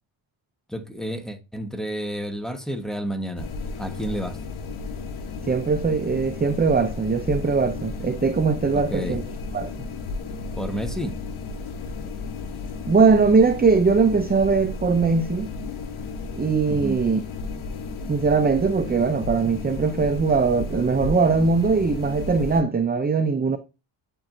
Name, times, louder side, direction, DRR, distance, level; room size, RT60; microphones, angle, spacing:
voice 1, 0.7-3.5 3.8-4.4 8.7-9.2 10.6-11.1 16.7-17.0, equal, ahead, 1.2 m, -30 dB
sound 1, 3.4-22.6, left 4 dB, 70° left, 1.2 m, -33 dB
voice 2, 5.5-9.2 9.5-9.7 12.9-15.5 16.4-17.2 18.1-23.6, right 4 dB, 20° right, 0.5 m, -21 dB
8.5 x 4.6 x 2.6 m
cardioid pair, 75°, 49 cm